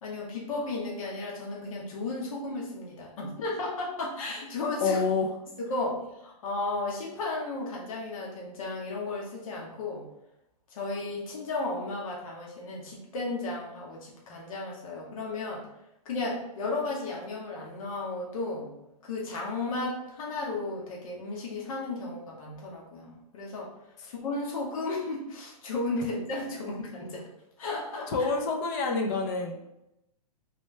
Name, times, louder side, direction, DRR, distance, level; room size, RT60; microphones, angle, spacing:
voice 1, 0.0-5.0 5.7-10.0 10.7-15.7 16.0-18.7 19.0-23.7 24.1-27.2 27.6-28.1, left 2 dB, 60° left, -3 dB, 1.1 m, -34 dB
voice 2, 4.8-5.3 24.0-24.1 28.1-29.6, left 4 dB, 30° left, 2 dB, 0.5 m, -27 dB
3.2 x 3.0 x 3.2 m, 0.87 s
hypercardioid pair, 155°, 20 cm